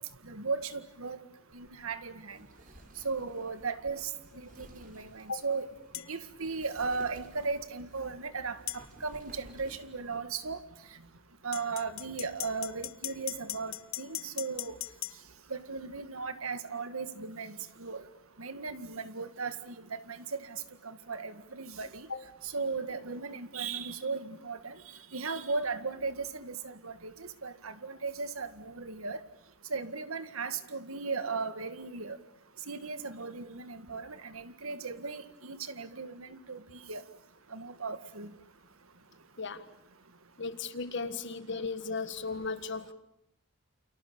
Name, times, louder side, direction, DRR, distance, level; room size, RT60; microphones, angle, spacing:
voice 1, 0.2-1.2 1.5-2.4 3.0-4.1 4.4-5.7 6.1-10.6 11.4-14.8 15.5-18.0 18.4-22.1 22.4-24.8 25.1-29.2 29.7-32.2 32.7-37.0 37.5-38.3, right 4 dB, 80° right, 1.9 m, -37 dB
Wind, 1.5-10.2, right 1 dB, 40° right, 4.8 m, -56 dB
sound 1, 5.9-6.1 8.7-8.8 11.5-15.2, left 15 dB, 75° left, 1.0 m, -38 dB
voice 2, 40.4-42.9, left 4 dB, 55° left, 1.7 m, -36 dB
29.5 x 28.5 x 7.0 m
head